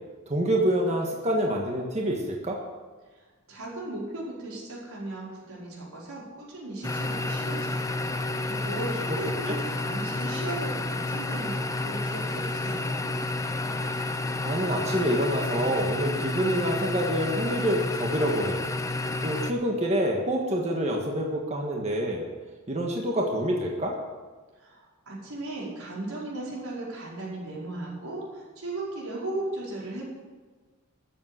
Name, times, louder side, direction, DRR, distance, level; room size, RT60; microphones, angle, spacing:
voice 1, 0.3-2.6 9.5-9.6 14.4-18.6 19.2-22.3 22.7-23.9, equal, 30° right, 0 dB, 1.6 m, -27 dB
voice 2, 3.5-13.0 24.6-30.1, right 2 dB, 90° right, -5 dB, 4.9 m, -37 dB
sound 1, 6.8-19.5, left 2 dB, 15° left, 0.6 m, -30 dB
14.0 x 7.6 x 8.0 m, 1.4 s
head